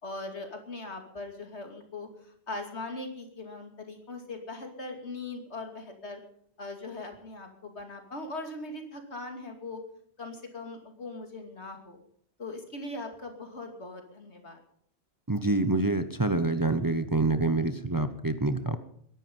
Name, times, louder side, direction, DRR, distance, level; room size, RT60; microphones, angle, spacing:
voice 1, 0.0-6.2 6.6-9.8 10.2-12.0 12.4-14.6, left 2 dB, 75° left, 4 dB, 2.9 m, -40 dB
voice 2, 15.3-18.8, right 2 dB, 20° right, 10 dB, 0.8 m, -26 dB
21.5 x 11.5 x 5.4 m, 0.65 s
omnidirectional pair, 1.2 m